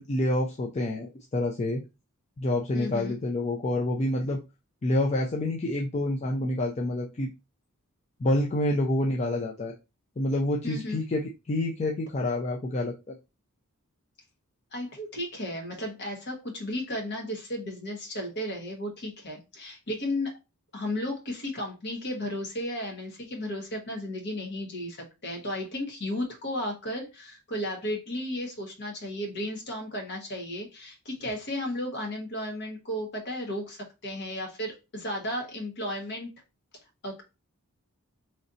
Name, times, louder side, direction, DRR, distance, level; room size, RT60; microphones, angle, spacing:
voice 1, 0.0-1.8 2.4-4.4 4.8-7.3 8.2-9.8 10.2-13.1, left 1 dB, 30° left, 0 dB, 0.4 m, -28 dB
voice 2, 2.7-3.1 10.6-11.0 14.7-20.4 20.7-36.3 37.0-37.2, left 1 dB, 55° left, 1 dB, 1.3 m, -34 dB
3.2 x 2.7 x 3.8 m, 0.27 s
head